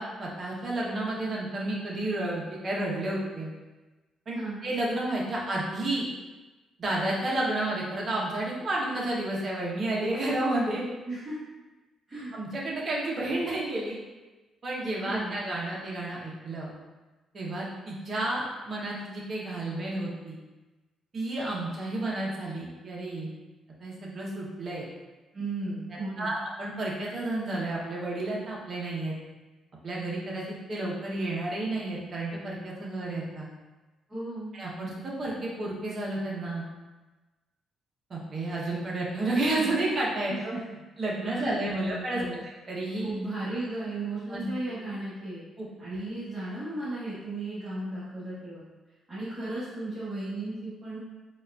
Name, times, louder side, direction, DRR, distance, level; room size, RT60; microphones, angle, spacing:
voice 1, 0.0-3.5 4.3-6.0 6.8-10.8 12.3-14.0 14.6-16.7 17.3-20.4 21.1-23.3 23.8-24.9 26.2-29.1 29.8-33.5 34.5-36.7 38.1-40.5 41.0-42.2 42.7-43.1 44.3-44.5 45.6-45.7, right 2 dB, 45° right, -4 dB, 0.9 m, -31 dB
voice 2, 11.1-11.4 12.1-12.3 15.0-15.4 25.3-26.3 34.1-34.5 40.3-40.8 41.3-42.4 43.0-45.4 45.8-48.6 49.1-51.0, right 2 dB, 30° right, -13 dB, 1.3 m, -35 dB
4.0 x 2.4 x 2.3 m, 1.2 s
cardioid pair, 90°, 0 cm